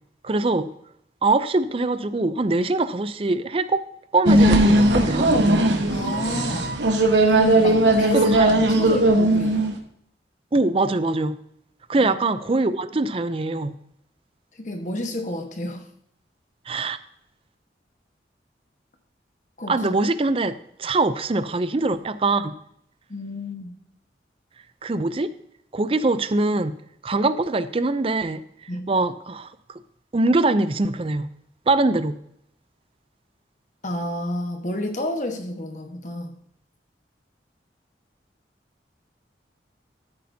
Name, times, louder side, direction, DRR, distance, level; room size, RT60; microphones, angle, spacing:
voice 1, 0.2-0.7 1.2-3.8 4.1-5.3 8.1-8.5 10.5-11.4 11.9-13.7 16.7-17.0 19.7-22.6 24.8-25.3 25.7-26.7 27.0-29.8 30.1-31.3 31.7-32.2, right 2 dB, 30° right, 13 dB, 0.5 m, -23 dB
sound 1, 4.3-9.7, right 1 dB, 85° right, 1.2 m, -18 dB
voice 2, 5.9-6.8 7.3-9.7 12.0-12.1 14.6-15.8 19.6-20.0 23.1-23.7 28.7-28.9 33.8-36.3, left 1 dB, 45° left, 5 dB, 1.3 m, -30 dB
13.5 x 8.5 x 2.8 m, 0.73 s
head